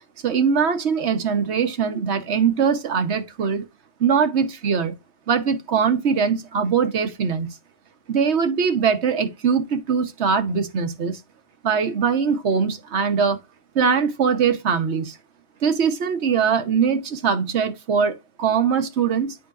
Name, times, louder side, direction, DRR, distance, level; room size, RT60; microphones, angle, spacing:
voice 1, 0.2-3.7 4.0-4.9 5.3-7.5 8.1-11.2 11.6-13.4 13.7-15.2 15.6-19.4, right 6 dB, 70° right, 1.2 m, -21 dB
9.2 x 4.6 x 2.4 m
omnidirectional pair, 1.2 m